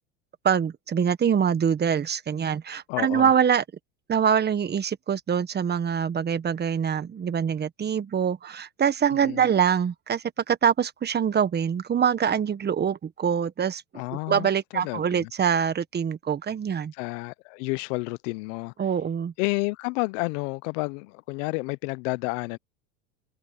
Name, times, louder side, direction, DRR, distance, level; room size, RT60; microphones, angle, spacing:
voice 1, 0.4-3.6 4.1-13.8 14.3-16.9 18.8-19.3, right 8 dB, 25° right, 1.4 m, -24 dB
voice 2, 2.9-3.3 9.2-9.4 13.9-15.3 17.0-18.7 19.4-22.6, left 27 dB, 60° left, 0.8 m, -30 dB
supercardioid pair, 110°, 41 cm